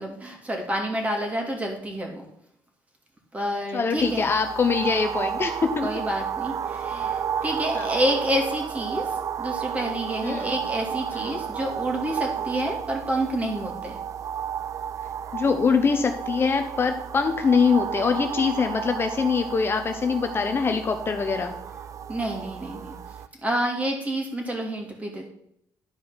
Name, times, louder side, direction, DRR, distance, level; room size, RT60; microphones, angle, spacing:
voice 1, 0.0-2.3 3.3-4.3 5.8-9.1 9.4-14.0 22.1-23.0 23.4-25.3, right 1 dB, 20° right, 2 dB, 2.6 m, -28 dB
voice 2, 3.7-5.9 7.7-7.9 10.2-10.5 11.1-11.3 15.3-21.6, left 5 dB, 35° left, 6 dB, 0.8 m, -23 dB
sound 1, 4.0-23.3, right 8 dB, 50° right, 0.5 m, -32 dB
11.5 x 4.9 x 5.6 m, 0.72 s
cardioid pair, 120°, 7 cm